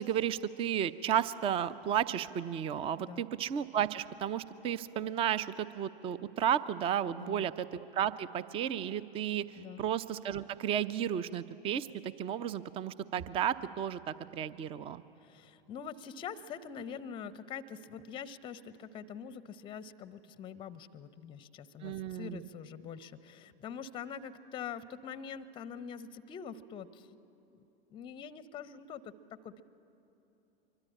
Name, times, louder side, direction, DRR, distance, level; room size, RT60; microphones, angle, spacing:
voice 1, 0.0-15.0 21.8-22.4, right 9 dB, 20° right, 17 dB, 0.6 m, -33 dB
voice 2, 7.1-7.5 9.6-9.8 15.2-27.1 27.5-27.7 27.9-29.6, left 7 dB, 15° left, 16 dB, 0.7 m, -44 dB
24.5 x 23.5 x 8.7 m, 2.9 s
figure-of-eight pair, 100°, 29 cm